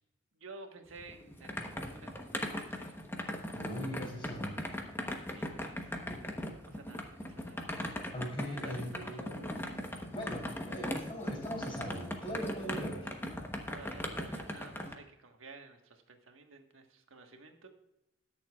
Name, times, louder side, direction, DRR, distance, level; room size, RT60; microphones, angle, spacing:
voice 1, 0.3-3.0 5.3-6.0 6.6-7.7 8.6-9.2 13.7-17.7, right 3 dB, 85° right, 4 dB, 1.4 m, -53 dB
sound 1, 0.9-14.9, left 1 dB, 10° left, 1.0 m, -39 dB
voice 2, 3.5-4.5 8.1-9.5 10.1-13.1, equal, 25° left, -1 dB, 3.8 m, -40 dB
20.5 x 7.0 x 2.4 m, 0.90 s
head